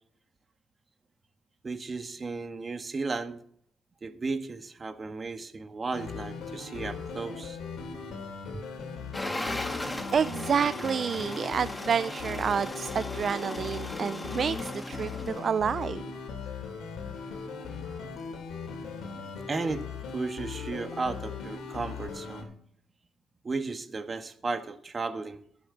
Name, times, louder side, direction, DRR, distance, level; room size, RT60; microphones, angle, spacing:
voice 1, 1.6-3.4 4.0-7.6 8.5-8.7 19.5-22.5 23.4-25.4, right 3 dB, 30° right, 8 dB, 1.5 m, -34 dB
sound 1, 5.9-22.4, left 5 dB, 80° left, 3.3 m, -39 dB
sound 2, 9.1-15.6, left 1 dB, 15° left, 1.6 m, -37 dB
voice 2, 10.1-16.0, right 7 dB, 50° right, 15 dB, 0.4 m, -29 dB
23.0 x 7.8 x 4.0 m, 0.64 s
cardioid pair, 90°, 0 cm